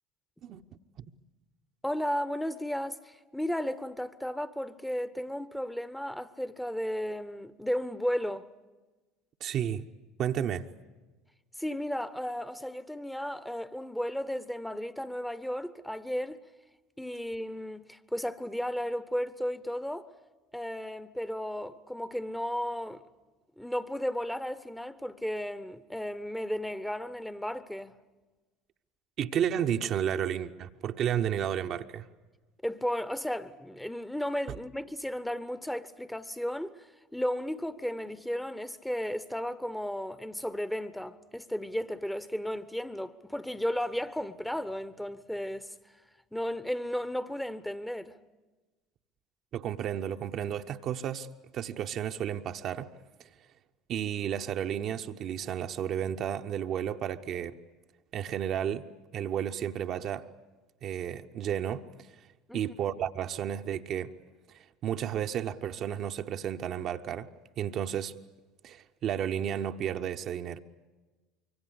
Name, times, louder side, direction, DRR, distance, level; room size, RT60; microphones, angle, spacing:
voice 1, 1.8-8.5 11.6-16.4 17.0-20.1 20.5-23.0 23.6-28.0 32.6-36.9 37.1-45.7 46.3-48.2 62.5-62.7, equal, 5° left, 1.0 m, -34 dB
voice 2, 9.4-9.9 10.2-10.7 29.2-32.1 49.5-51.3 51.5-52.9 53.9-57.6 58.1-58.8 59.1-60.3 60.8-61.8 62.5-64.1 64.5-67.3 67.6-68.1 68.6-70.6, right 9 dB, 45° right, 0.9 m, -32 dB
25.0 x 24.0 x 8.3 m
figure-of-eight pair, 65°, 0 cm